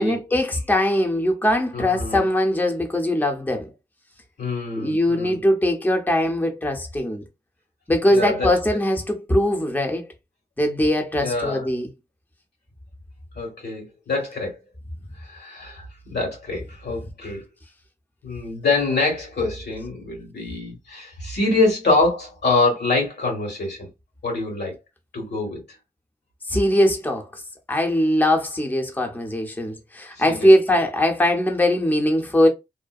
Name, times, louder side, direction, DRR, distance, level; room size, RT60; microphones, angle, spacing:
voice 1, 0.0-3.7 4.8-7.2 7.9-10.1 10.6-11.9 26.5-27.4 27.7-32.5, left 1 dB, 10° left, 0.6 m, -21 dB
voice 2, 1.7-2.2 4.4-5.4 8.1-8.5 11.2-11.6 13.3-14.5 15.2-17.4 18.2-23.9 24.2-24.8 25.1-25.6 30.1-30.5, left 3 dB, 85° left, 1.3 m, -25 dB
2.6 x 2.1 x 2.3 m
cardioid pair, 45°, 17 cm